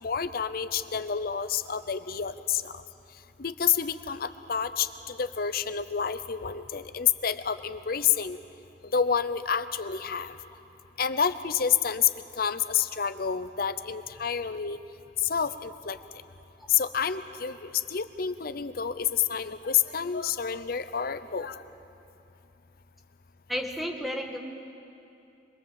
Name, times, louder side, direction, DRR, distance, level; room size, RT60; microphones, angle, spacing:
voice 1, 0.0-2.8 3.4-8.4 8.9-10.4 11.0-14.8 15.2-16.0 16.7-21.6, left 7 dB, 55° left, 12 dB, 0.7 m, -29 dB
voice 2, 23.5-24.4, equal, ahead, 1 dB, 1.9 m, -32 dB
25.5 x 20.5 x 7.6 m, 2.7 s
head